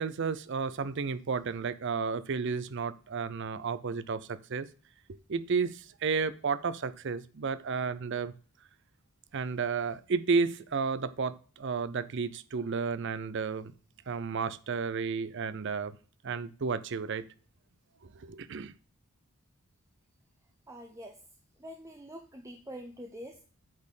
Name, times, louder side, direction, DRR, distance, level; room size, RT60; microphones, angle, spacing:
voice 1, 0.0-4.7 5.3-8.3 9.3-13.7 14.1-16.0 16.2-17.3 18.1-18.7, right 5 dB, 55° right, 0.5 m, -32 dB
voice 2, 20.7-21.2 21.6-23.4, equal, 15° right, 0.7 m, -45 dB
8.6 x 4.3 x 6.4 m
head